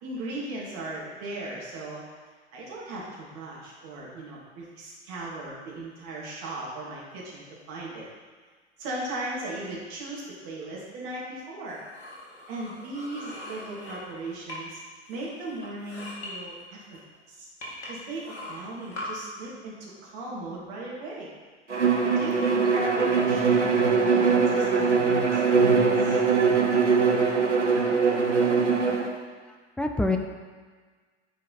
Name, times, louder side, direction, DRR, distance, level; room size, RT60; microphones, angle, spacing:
voice 1, 0.0-2.0 2.5-8.1 8.8-11.8 12.5-14.8 15.1-17.0 17.3-17.5 17.9-21.3 22.2-26.2, right 2 dB, 45° right, -5 dB, 2.5 m, -37 dB
sound 1, 11.7-14.8 15.1-16.3 16.9-17.0 17.6-19.1, left 1 dB, 65° left, 2.2 m, -41 dB
Bowed string instrument, 21.7-29.1, right 5 dB, 90° right, 0.8 m, -22 dB
voice 2, 29.8-30.2, left 2 dB, 5° left, 4 dB, 0.4 m, -27 dB
9.1 x 4.7 x 4.2 m, 1.5 s
figure-of-eight pair, 80°, 34 cm